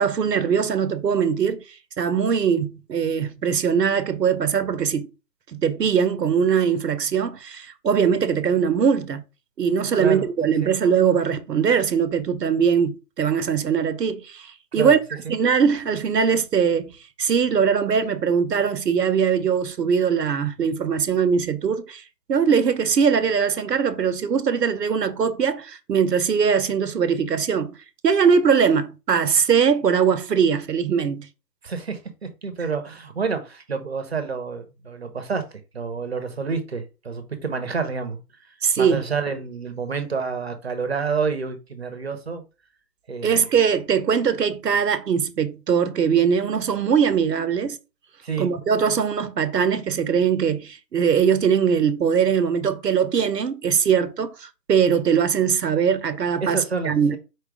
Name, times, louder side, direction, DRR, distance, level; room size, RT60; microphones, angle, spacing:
voice 1, 0.0-1.6 2.0-5.1 5.5-9.2 9.6-15.0 15.3-16.9 17.2-22.0 22.3-27.7 28.0-31.3 38.6-39.0 43.2-47.8 48.4-57.2, right 7 dB, 80° right, 0.7 m, -21 dB
voice 2, 10.0-10.7 14.7-15.0 15.2-15.3 31.6-38.2 38.8-42.4 43.1-43.4 48.2-48.5 56.4-57.2, right 5 dB, 40° right, 0.7 m, -29 dB
4.4 x 2.3 x 4.7 m
figure-of-eight pair, 150°, 48 cm